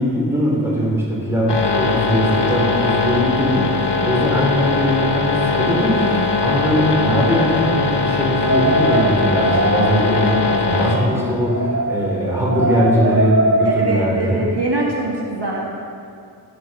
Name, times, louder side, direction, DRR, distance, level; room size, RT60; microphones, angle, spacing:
voice 1, 0.0-14.4, equal, 5° right, -5 dB, 3.9 m, -20 dB
sound 1, 1.5-11.0, left 4 dB, 90° left, 1.3 m, -20 dB
sound 2, 8.4-14.1, right 2 dB, 35° right, 0.7 m, -22 dB
voice 2, 13.6-15.7, right 2 dB, 75° right, -2 dB, 1.8 m, -23 dB
16.5 x 6.8 x 6.4 m, 2.4 s
wide cardioid pair, 75°, 40 cm